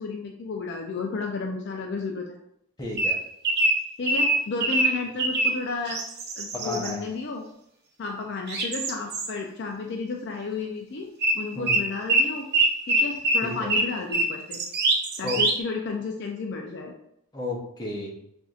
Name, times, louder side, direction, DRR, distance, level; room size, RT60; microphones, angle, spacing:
voice 1, 0.0-2.4 4.0-6.0 6.3-7.5 8.0-11.1 11.3-12.5 12.9-14.6 15.2-16.9, left 4 dB, 50° left, 1 dB, 0.4 m, -32 dB
voice 2, 2.8-3.2 6.6-7.0 11.5-11.7 13.4-13.7 15.2-15.4 17.3-18.2, left 2 dB, 20° left, -2 dB, 0.8 m, -32 dB
sound 1, 3.0-5.6 5.9-6.9 8.5-9.3 11.2-11.4 11.7-15.6, right 2 dB, 45° right, 0.6 m, -23 dB
6.1 x 2.6 x 2.4 m, 0.76 s
head